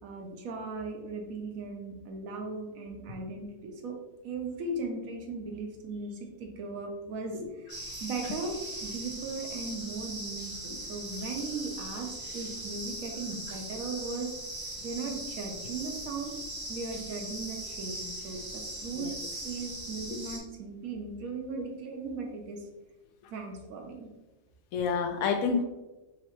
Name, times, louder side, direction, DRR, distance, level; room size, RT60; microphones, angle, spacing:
voice 1, 0.0-4.0 4.2-7.7 8.0-14.3 14.8-16.4 16.7-19.1 19.4-22.7 23.3-24.1, right 3 dB, 85° right, 2 dB, 1.2 m, -38 dB
sound 1, 7.7-20.4, right 1 dB, 25° right, 0.6 m, -40 dB
voice 2, 24.7-25.6, left 5 dB, 85° left, 6 dB, 1.0 m, -29 dB
3.8 x 3.1 x 2.9 m, 1.1 s
omnidirectional pair, 1.4 m